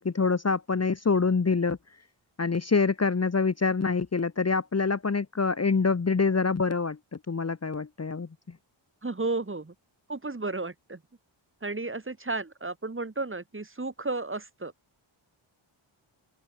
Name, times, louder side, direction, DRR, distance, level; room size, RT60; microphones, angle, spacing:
voice 1, 0.0-1.8 2.4-7.0 7.3-8.3, left 4 dB, 30° left, 1.3 m, -25 dB
voice 2, 9.0-9.7 10.1-11.0 11.6-14.7, right 3 dB, 25° right, 3.5 m, -33 dB
open air
wide cardioid pair, 155°, 49 cm